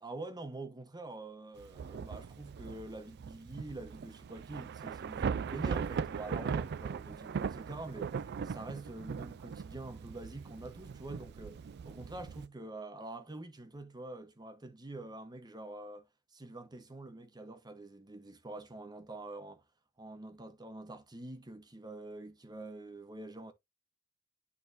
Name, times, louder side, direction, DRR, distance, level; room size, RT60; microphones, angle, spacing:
voice 1, 0.0-8.2 8.4-16.1 16.3-19.6 20.0-23.5, right 2 dB, 20° right, 0.9 m, -46 dB
Thunder / Rain, 1.6-12.5, right 6 dB, 50° right, 0.3 m, -39 dB
11.0 x 3.8 x 2.6 m
head